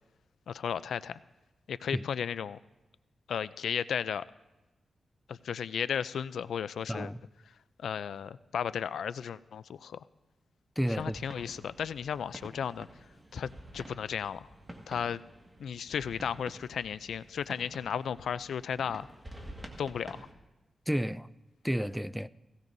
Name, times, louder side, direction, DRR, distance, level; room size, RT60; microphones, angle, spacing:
voice 1, 0.5-1.2 1.7-2.6 3.3-4.2 5.3-7.1 7.8-10.0 11.0-12.9 13.3-14.5 14.9-15.2 15.6-19.1 19.8-20.2, left 8 dB, 90° left, 0.3 m, -34 dB
voice 2, 6.9-7.2 10.8-11.2 20.9-21.3 21.6-22.3, equal, ahead, 0.3 m, -31 dB
sound 1, 10.9-20.3, right 1 dB, 20° right, 1.7 m, -49 dB
17.5 x 17.0 x 2.6 m
wide cardioid pair, 95°, 0 cm